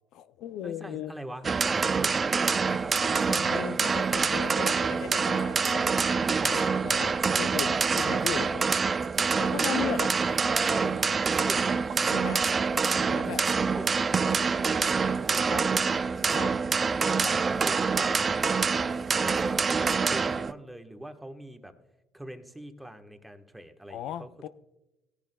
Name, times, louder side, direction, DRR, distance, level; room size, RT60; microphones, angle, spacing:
voice 1, 0.1-1.1 1.9-2.0 2.7-2.8 3.2-6.0 6.4-8.7 9.4-10.4 12.1-12.5 13.0-13.4 15.5-15.6 16.3-16.5 17.2-17.3 23.9-24.5, left 11 dB, 65° left, 13 dB, 0.4 m, -37 dB
voice 2, 0.6-3.4 10.4-11.0 11.2-11.8 12.5-13.3 13.6-16.7 17.0-18.1 18.6-21.7 22.1-24.5, right 1 dB, 5° right, 6 dB, 1.1 m, -42 dB
sound 1, 1.4-20.5, right 5 dB, 30° right, 0.4 m, -26 dB
sound 2, 4.7-4.8 6.4-6.5 8.2-8.3 10.2-10.4 11.9-12.0 13.7-13.9, right 7 dB, 55° right, 1.6 m, -44 dB
17.5 x 10.5 x 2.2 m, 1.0 s
supercardioid pair, 100°, 0 cm